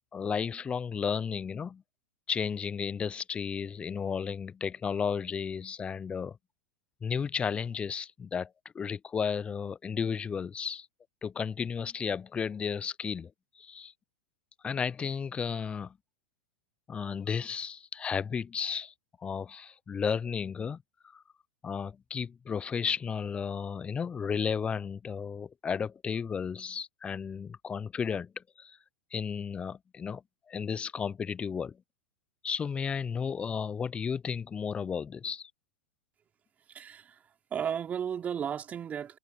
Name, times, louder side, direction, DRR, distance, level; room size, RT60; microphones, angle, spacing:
voice 1, 0.1-1.8 2.3-6.4 7.0-8.5 8.7-10.9 11.2-13.3 13.6-13.9 14.6-16.0 16.9-18.9 19.2-20.8 21.1-21.2 21.6-28.8 29.1-30.2 30.5-31.8 32.4-35.5, left 6 dB, 20° left, 0.6 m, -33 dB
voice 2, 36.7-39.2, right 8 dB, 25° right, 4.0 m, -35 dB
hypercardioid pair, 100°, 6 cm